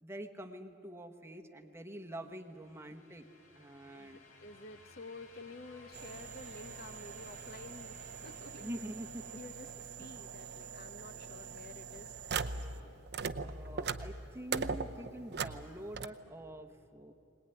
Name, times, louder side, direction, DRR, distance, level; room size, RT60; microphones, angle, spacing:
voice 1, 0.0-3.3 3.5-4.2 8.6-9.2 13.4-17.1, right 1 dB, 10° right, 4 dB, 1.1 m, -46 dB
sound 1, 2.0-10.9, left 3 dB, 90° left, 3.2 m, -60 dB
voice 2, 3.9-8.8 9.3-9.7 10.0-12.1 12.7-13.0, left 2 dB, 45° left, 9 dB, 0.9 m, -51 dB
sound 2, 5.9-12.8 13.1-16.1, right 5 dB, 50° right, 0.7 m, -41 dB
22.5 x 19.5 x 9.8 m, 2.9 s
head